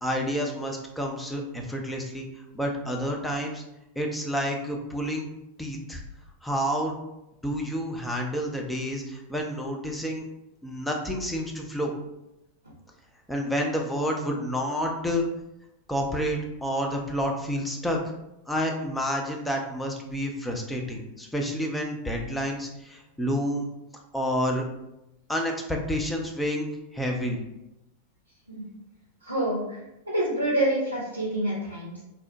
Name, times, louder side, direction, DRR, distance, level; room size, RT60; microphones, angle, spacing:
voice 1, 0.0-3.6 4.0-5.3 5.6-6.0 6.4-7.0 7.4-10.3 10.6-11.9 13.3-15.3 15.9-18.0 18.5-23.7 24.1-24.6 25.3-27.4, equal, 5° left, 1 dB, 0.4 m, -29 dB
voice 2, 29.2-29.8 30.1-32.0, right 1 dB, 85° right, -5 dB, 0.5 m, -27 dB
2.8 x 2.0 x 2.7 m, 0.90 s
figure-of-eight pair, 90°, 0 cm